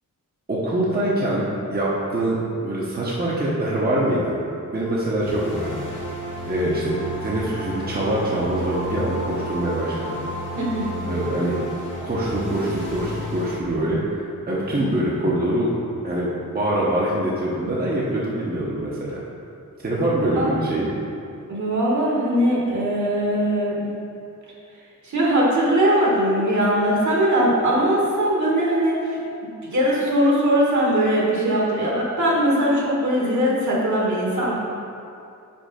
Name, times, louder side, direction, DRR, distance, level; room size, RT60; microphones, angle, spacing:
voice 1, 0.5-4.4 4.7-5.8 6.4-10.2 11.1-11.6 12.0-15.7 16.0-19.2 19.8-20.9, right 1 dB, 30° right, -6 dB, 0.8 m, -24 dB
sound 1, 5.2-13.6, equal, 35° left, 1.2 m, -32 dB
voice 2, 10.5-10.9 20.4-20.5 21.5-23.9 25.0-34.6, equal, 65° right, -5 dB, 1.6 m, -20 dB
5.2 x 5.0 x 5.1 m, 2.5 s
wide cardioid pair, 140°, 32 cm